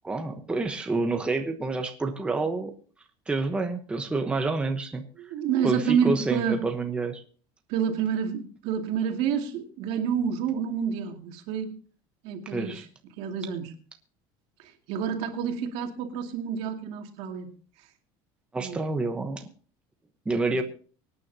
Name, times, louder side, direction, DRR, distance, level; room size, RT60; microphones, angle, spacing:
voice 1, 0.0-2.7 3.3-5.3 5.6-7.2 12.5-12.8 18.5-19.5 20.2-20.6, right 3 dB, 10° right, 4 dB, 1.1 m, -28 dB
voice 2, 5.2-6.6 7.7-11.7 12.2-12.8 13.2-13.7 14.6-17.5 18.6-18.8 20.5-20.6, right 7 dB, 65° right, 3 dB, 2.4 m, -28 dB
24.0 x 9.7 x 2.8 m, 0.42 s
cardioid pair, 155°, 11 cm